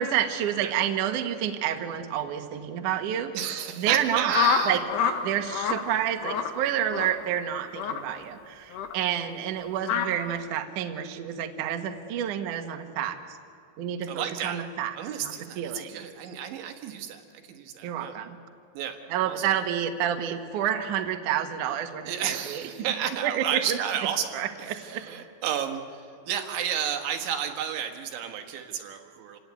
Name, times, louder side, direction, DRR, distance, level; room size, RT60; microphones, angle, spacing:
voice 1, 0.0-3.3 3.8-4.8 5.2-13.2 13.8-16.0 17.8-18.4 19.1-22.6 23.2-23.8 24.3-25.0, right 10 dB, 65° right, 5 dB, 2.2 m, -29 dB
voice 2, 3.3-4.8 14.1-14.6 15.0-18.2 18.8-19.4 22.0-29.4, right 9 dB, 85° right, 5 dB, 3.9 m, -32 dB
sound 1, 4.3-5.2 5.5-5.8 6.2-6.5 6.9-7.1 7.7-8.0 8.7-8.9 9.8-10.1, left 7 dB, 70° left, 3.4 m, -26 dB
28.0 x 17.0 x 9.4 m, 2.4 s
omnidirectional pair, 5.2 m